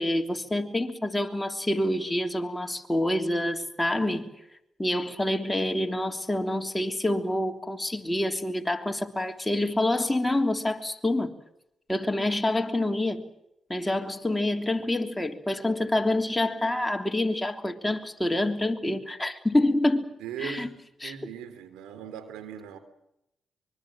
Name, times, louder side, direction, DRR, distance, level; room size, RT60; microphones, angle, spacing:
voice 1, 0.0-4.3 4.8-11.3 11.9-13.2 13.7-20.0 20.4-20.7 21.0-21.1, left 1 dB, 10° left, 3.3 m, -27 dB
voice 2, 20.2-20.7 21.0-22.8, right 8 dB, 90° right, 3.3 m, -39 dB
25.0 x 23.5 x 7.5 m
supercardioid pair, 55°, 0 cm